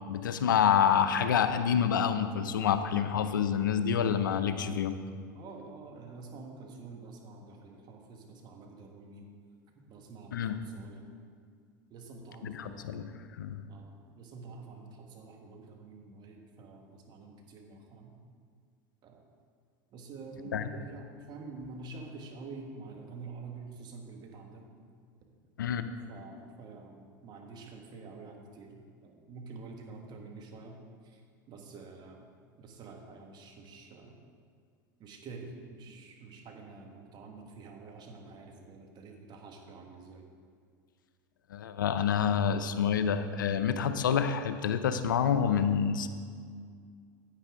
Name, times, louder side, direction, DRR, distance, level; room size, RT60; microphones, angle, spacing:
voice 1, 0.1-5.0 10.3-10.6 12.4-13.6 20.5-20.8 25.6-25.9 41.5-46.1, left 8 dB, 85° left, 10 dB, 0.5 m, -28 dB
voice 2, 5.3-9.3 9.7-11.1 11.9-13.3 13.7-18.2 19.0-19.2 19.9-24.7 26.1-31.2 31.5-32.3 32.6-34.2 35.0-40.3, right 3 dB, 45° right, 2 dB, 1.6 m, -48 dB
9.7 x 9.0 x 3.7 m, 2.1 s
hypercardioid pair, 90°, 10 cm